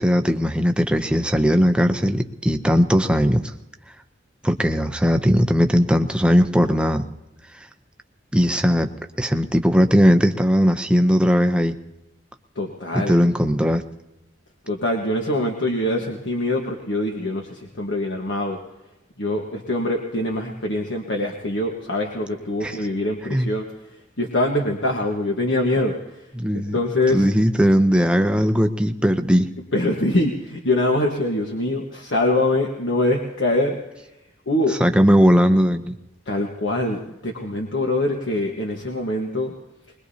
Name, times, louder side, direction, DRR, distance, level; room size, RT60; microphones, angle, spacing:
voice 1, 0.0-3.5 4.4-7.1 8.3-8.9 9.2-11.8 12.9-13.8 22.6-22.8 23.3-23.5 26.4-26.8 27.1-29.5 34.8-35.9, equal, 5° right, 7 dB, 0.6 m, -18 dB
voice 2, 12.5-13.2 14.7-18.6 19.2-26.3 26.5-27.3 29.7-33.8 34.5-34.8 36.3-39.5, left 1 dB, 70° left, 1 dB, 1.4 m, -24 dB
22.0 x 21.5 x 2.8 m, 0.93 s
head